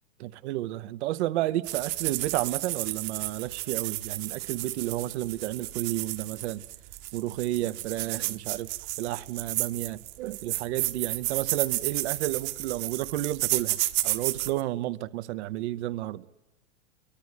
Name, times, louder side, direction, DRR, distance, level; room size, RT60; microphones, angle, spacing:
voice 1, 0.2-6.6 7.1-8.7 9.0-13.8 14.0-16.2, right 15 dB, 65° right, 0.8 m, -31 dB
sound 1, 1.6-14.6, right 18 dB, 45° right, 1.2 m, -32 dB
30.0 x 23.0 x 7.9 m
supercardioid pair, 140°, 37 cm